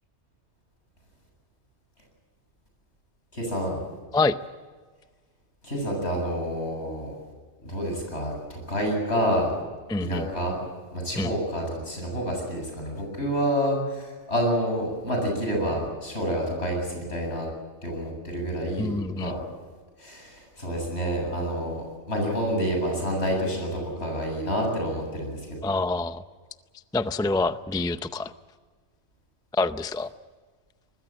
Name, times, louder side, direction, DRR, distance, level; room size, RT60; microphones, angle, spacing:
voice 1, 3.3-3.8 5.6-7.1 7.6-9.5 10.0-10.6 10.9-17.5 17.8-19.4 20.0-25.5, equal, 75° left, 1 dB, 8.3 m, -28 dB
voice 2, 9.9-10.3 11.2-11.3 18.8-19.3 25.6-26.2 26.9-28.3 29.5-30.1, left 3 dB, 5° left, 11 dB, 0.4 m, -26 dB
24.5 x 20.0 x 7.7 m, 1.5 s
omnidirectional pair, 1.1 m